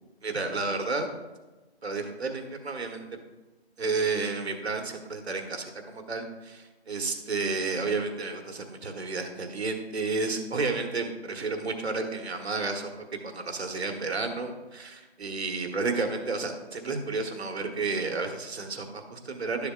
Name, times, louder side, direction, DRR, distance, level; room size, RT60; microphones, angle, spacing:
voice 1, 0.2-1.1 1.8-3.0 3.8-12.9 13.2-19.7, right 3 dB, 75° right, 5 dB, 1.4 m, -31 dB
12.0 x 7.1 x 2.4 m, 1.2 s
hypercardioid pair, 175°, 32 cm